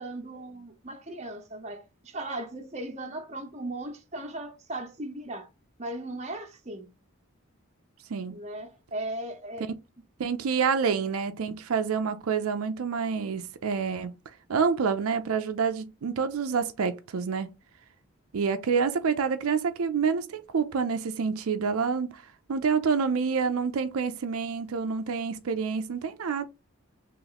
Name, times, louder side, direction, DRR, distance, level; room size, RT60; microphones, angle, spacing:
voice 1, 0.0-5.5 5.8-6.9 8.3-9.7, right 1 dB, 30° right, 0.8 m, -37 dB
voice 2, 8.1-8.4 10.2-14.2 14.5-17.5 18.3-26.4, right 5 dB, 80° right, 0.5 m, -28 dB
3.0 x 2.9 x 3.9 m
head